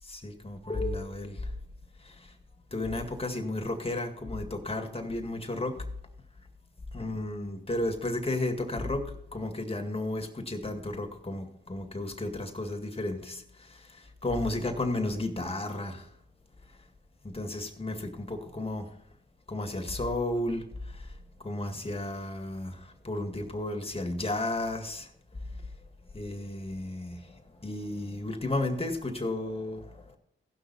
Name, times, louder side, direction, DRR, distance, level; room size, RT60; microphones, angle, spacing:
voice 1, 0.1-1.4 2.7-5.8 6.9-13.4 14.2-16.1 17.2-18.9 19.5-20.7 21.4-25.1 26.1-27.2 27.6-30.0, left 2 dB, 25° left, 2.0 m, -33 dB
16.0 x 6.1 x 4.2 m
cardioid pair, 50°, 21 cm